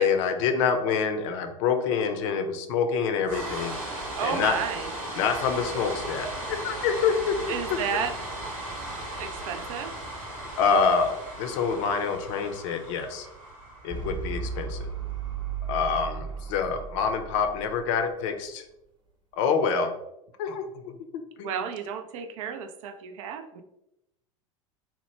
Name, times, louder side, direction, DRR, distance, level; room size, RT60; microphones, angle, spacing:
voice 1, 0.0-3.8 4.2-4.6 5.1-7.4 7.7-7.8 10.6-13.3 13.8-14.9 15.7-18.6 19.3-19.9 20.4-21.5, left 6 dB, 65° left, 7 dB, 0.5 m, -26 dB
sound 1, 3.2-17.3, right 1 dB, 85° right, 0.9 m, -37 dB
voice 2, 4.2-4.9 7.5-8.1 9.2-9.9 21.4-23.6, right 7 dB, 70° right, 7 dB, 0.4 m, -32 dB
sound 2, 13.9-18.4, right 6 dB, 25° right, 0.8 m, -35 dB
2.9 x 2.0 x 3.0 m, 0.86 s
hypercardioid pair, 80°, 18 cm